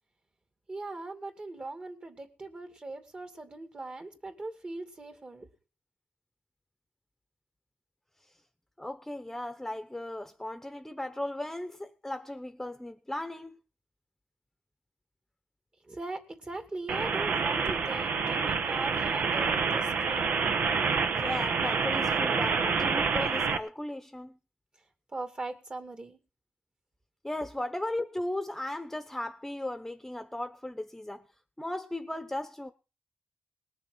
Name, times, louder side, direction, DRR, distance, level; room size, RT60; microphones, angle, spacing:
voice 1, 0.7-5.5 15.8-20.2 25.1-26.2, right 2 dB, 35° right, 2.4 m, -40 dB
voice 2, 8.8-13.6 21.2-24.4 27.2-31.3 31.6-32.7, left 1 dB, 10° left, 1.0 m, -36 dB
sound 1, 16.9-23.6, right 5 dB, 75° right, 1.2 m, -28 dB
20.0 x 6.9 x 6.2 m
wide cardioid pair, 120°, 3 cm